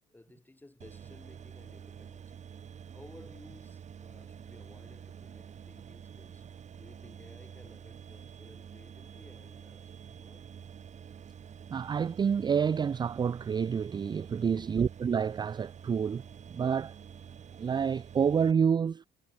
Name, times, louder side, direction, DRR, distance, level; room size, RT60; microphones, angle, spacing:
voice 1, 0.0-2.3 2.9-6.5 6.7-10.5 14.5-14.8, left 2 dB, 10° left, 7.3 m, -56 dB
sound 1, 0.8-18.5, right 8 dB, 45° right, 3.1 m, -48 dB
voice 2, 11.7-16.2 16.5-16.9 17.6-19.1, right 7 dB, 25° right, 0.4 m, -28 dB
cardioid pair, 110°, 17 cm